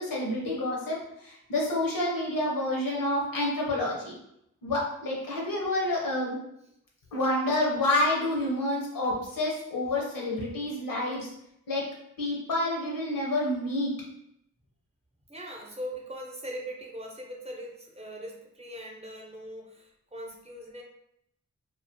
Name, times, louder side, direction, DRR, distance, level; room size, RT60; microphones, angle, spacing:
voice 1, 0.0-4.1 4.6-6.4 7.1-11.3 11.7-11.8 12.2-14.0, left 1 dB, 85° left, -3 dB, 0.9 m, -28 dB
voice 2, 15.3-20.8, equal, 20° right, -1 dB, 0.7 m, -40 dB
2.5 x 2.4 x 2.6 m, 0.77 s
cardioid pair, 45°, 33 cm